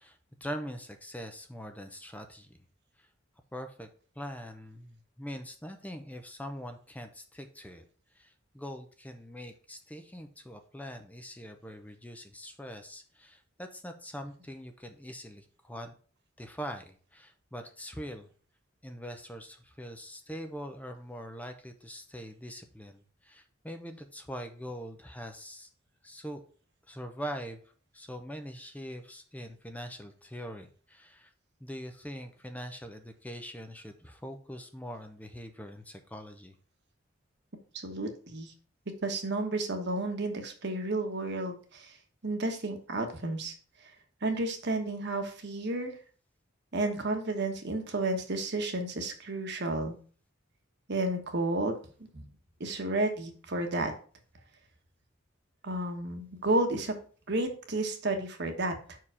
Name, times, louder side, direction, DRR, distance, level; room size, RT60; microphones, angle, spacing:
voice 1, 0.0-2.6 3.5-3.9 4.2-7.8 8.1-15.9 16.4-18.3 18.8-25.7 26.0-26.4 26.9-27.6 27.9-31.3 31.6-36.5, equal, 10° left, 6 dB, 0.6 m, -43 dB
voice 2, 37.7-38.5 39.0-42.0 42.2-43.5 44.2-45.9 46.7-49.9 50.9-51.8 52.1-52.2 52.6-53.9 55.6-56.9 57.3-58.7, right 2 dB, 60° right, 5 dB, 1.3 m, -31 dB
5.7 x 4.7 x 4.9 m, 0.41 s
head